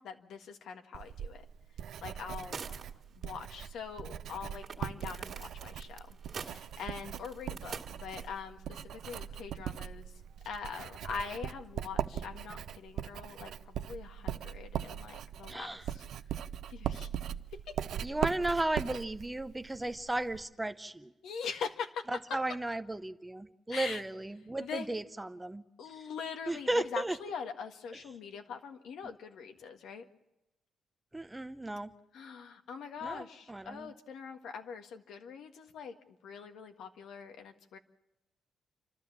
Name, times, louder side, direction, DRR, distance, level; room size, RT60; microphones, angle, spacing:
voice 1, 0.0-1.5 2.0-2.6 3.1-6.0 6.4-10.1 10.4-16.0 16.7-17.1 21.2-22.1 23.7-24.0 24.6-24.9 25.8-30.0 32.1-37.8, left 6 dB, 80° left, 5 dB, 1.7 m, -43 dB
Writing, 0.9-20.5, right 9 dB, 75° right, 0.6 m, -40 dB
sound 1, 2.3-3.1 3.3-3.4 4.6-8.4 9.0-9.2, right 6 dB, 45° right, 2.2 m, -45 dB
voice 2, 15.5-15.8 18.0-21.1 22.1-25.6 26.5-27.2 31.1-31.9 33.0-33.9, right 2 dB, 10° right, 11 dB, 0.7 m, -35 dB
29.5 x 12.5 x 7.3 m, 0.97 s
cardioid pair, 120°, 0 cm